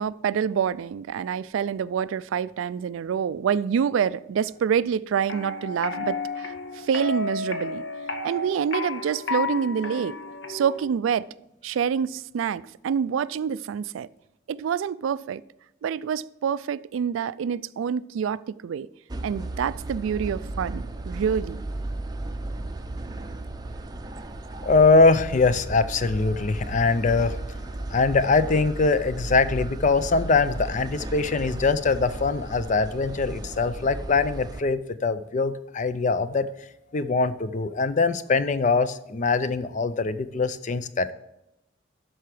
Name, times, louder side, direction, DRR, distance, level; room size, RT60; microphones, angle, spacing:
voice 1, 0.0-7.8 8.2-10.2 10.5-11.3 11.6-14.1 14.5-15.4 15.8-18.9 19.2-21.7, right 7 dB, 80° right, 0.3 m, -27 dB
sound 1, 5.3-10.9, left 3 dB, 65° left, 1.2 m, -32 dB
sound 2, 19.1-34.6, right 2 dB, 20° right, 0.5 m, -35 dB
voice 2, 24.6-27.4 27.9-36.5 36.9-41.1, left 4 dB, 40° left, 0.4 m, -22 dB
12.5 x 4.7 x 4.8 m
head